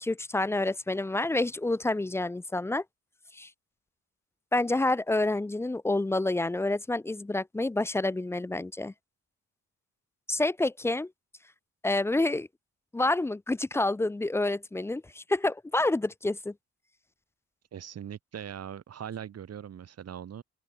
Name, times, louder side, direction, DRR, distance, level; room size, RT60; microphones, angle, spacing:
voice 1, 0.0-2.8 3.3-3.5 4.5-8.9 10.3-11.1 11.8-12.5 12.9-16.5, left 2 dB, 10° left, 0.4 m, -28 dB
voice 2, 17.7-20.4, right 9 dB, 55° right, 2.7 m, -40 dB
open air
cardioid pair, 90°, 30 cm